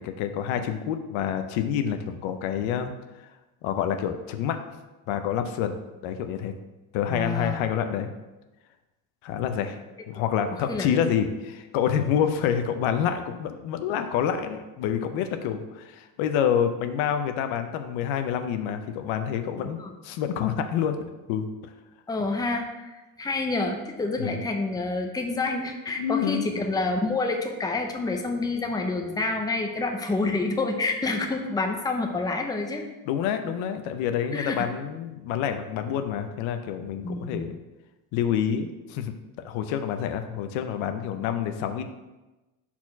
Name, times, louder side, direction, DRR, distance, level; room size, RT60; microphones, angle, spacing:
voice 1, 0.0-2.9 3.6-4.6 5.1-5.7 6.0-6.5 6.9-8.1 9.2-9.8 10.1-19.8 20.0-21.0 21.3-21.7 24.2-24.3 26.0-26.5 33.1-37.5 38.1-39.1 39.4-41.8, left 8 dB, 80° left, 7 dB, 0.7 m, -27 dB
voice 2, 7.1-7.6 10.7-11.1 19.6-19.9 22.1-32.8 34.3-34.6 37.0-37.5, left 3 dB, 10° left, 3 dB, 0.6 m, -28 dB
4.4 x 4.3 x 5.8 m, 1.1 s
cardioid pair, 110°, 47 cm